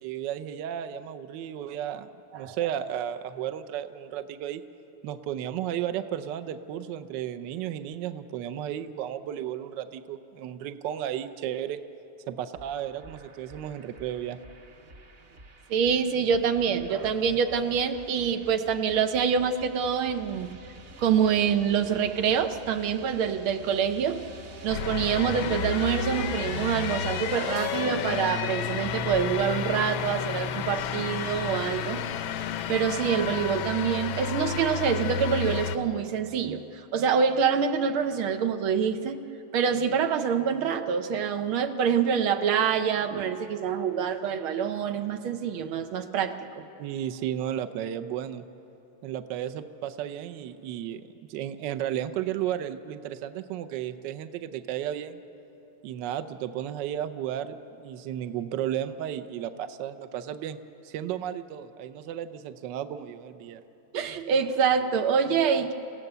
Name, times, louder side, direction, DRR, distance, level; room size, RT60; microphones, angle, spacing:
voice 1, 0.0-2.1 2.3-4.6 5.0-11.8 12.3-14.4 46.8-48.4 49.0-51.0 51.3-55.2 55.8-60.6 60.8-63.6, right 10 dB, 70° right, 10 dB, 1.3 m, -33 dB
sound 1, 12.6-29.4, right 2 dB, 40° right, 0.9 m, -47 dB
voice 2, 15.7-20.5 21.0-24.2 24.6-32.0 32.7-36.6 36.9-39.2 39.5-46.6 63.9-65.7, right 7 dB, 85° right, 7 dB, 1.8 m, -26 dB
sound 2, 24.7-35.8, left 8 dB, 80° left, 1.5 m, -31 dB
29.5 x 16.5 x 6.8 m, 2.9 s
omnidirectional pair, 2.2 m